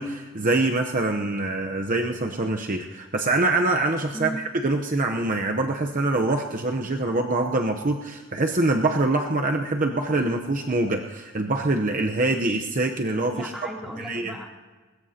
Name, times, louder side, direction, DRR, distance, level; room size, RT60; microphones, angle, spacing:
voice 1, 0.0-13.5 14.0-14.3, right 2 dB, 40° right, 3 dB, 0.8 m, -24 dB
voice 2, 4.1-4.4 13.3-14.4, equal, ahead, -2 dB, 2.9 m, -35 dB
21.0 x 20.5 x 2.9 m, 1.3 s
head